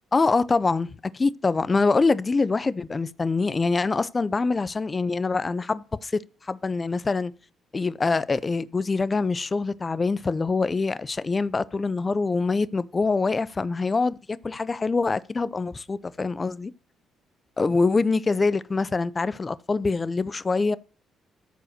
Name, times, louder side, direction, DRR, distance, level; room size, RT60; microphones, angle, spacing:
voice 1, 0.1-7.3 7.7-16.7 17.6-20.8, left 3 dB, 30° left, 0.5 m, -24 dB
13.5 x 4.9 x 6.5 m
cardioid pair, 90°, 0 cm